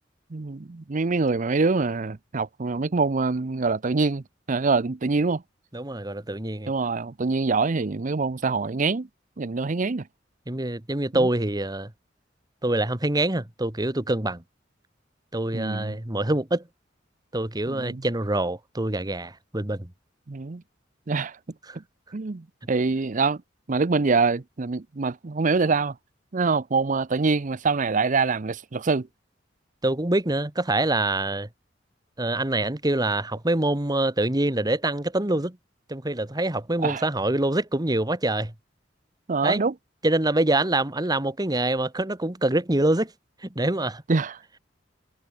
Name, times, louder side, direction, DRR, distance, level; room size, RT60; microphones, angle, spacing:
voice 1, 0.3-5.4 6.7-9.1 9.4-10.1 11.1-11.3 15.5-16.0 17.7-18.0 20.3-20.6 21.1-21.4 21.7-21.8 22.1-23.4 23.7-26.0 26.3-29.1 36.8-37.0 39.3-39.7 44.1-44.4, right 4 dB, 45° right, 0.6 m, -25 dB
voice 2, 5.7-6.7 10.5-11.9 12.6-14.4 15.3-16.6 17.3-19.9 21.7-21.8 29.8-31.5 32.2-35.6 35.9-38.5 39.4-39.6 40.0-43.1 43.4-44.0, right 2 dB, 20° right, 1.6 m, -25 dB
head